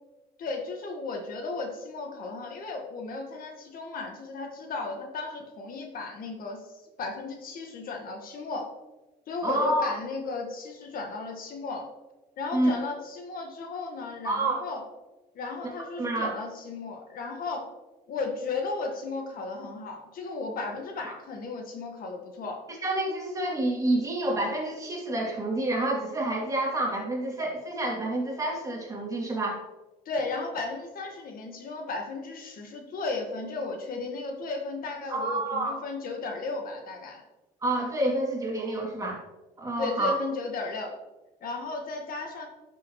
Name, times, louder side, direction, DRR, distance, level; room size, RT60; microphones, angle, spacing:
voice 1, 0.4-8.7 9.3-11.9 12.4-14.8 15.3-17.7 18.1-22.6 30.0-37.2 39.8-40.9 41.4-42.5, left 3 dB, 60° left, 2 dB, 1.5 m, -35 dB
voice 2, 9.4-9.9 12.5-12.7 14.2-14.6 16.0-16.3 21.0-21.1 22.7-29.6 35.1-35.8 37.6-39.2 39.6-40.2, right 1 dB, 20° right, -2 dB, 2.6 m, -28 dB
11.5 x 6.3 x 3.0 m, 1.1 s
cardioid pair, 110°, 17 cm